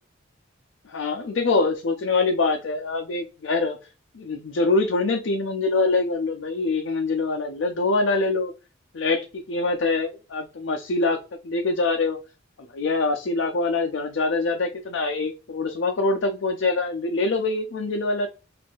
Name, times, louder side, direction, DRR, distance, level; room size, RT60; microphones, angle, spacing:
voice 1, 0.9-3.8 4.1-8.5 8.9-11.2 11.4-12.2 12.6-18.3, left 3 dB, 65° left, 2 dB, 0.5 m, -24 dB
3.5 x 2.5 x 2.3 m, 0.30 s
head